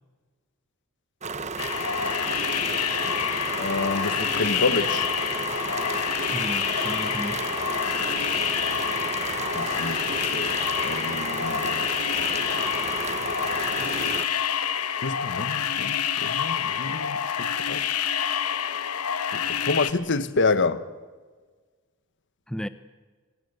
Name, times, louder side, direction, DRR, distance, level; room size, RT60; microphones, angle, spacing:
sound 1, 1.2-14.3, right 4 dB, 30° right, 1.0 m, -32 dB
sound 2, 1.6-19.9, left 8 dB, 85° left, 1.2 m, -27 dB
voice 1, 3.6-5.1 9.5-10.1 10.3-11.8 14.0-14.2 15.0-17.8 19.3-20.9, left 3 dB, 55° left, 1.2 m, -28 dB
voice 2, 6.3-7.6 13.8-14.0 22.5-22.7, equal, 5° left, 0.6 m, -34 dB
25.5 x 19.5 x 8.0 m
head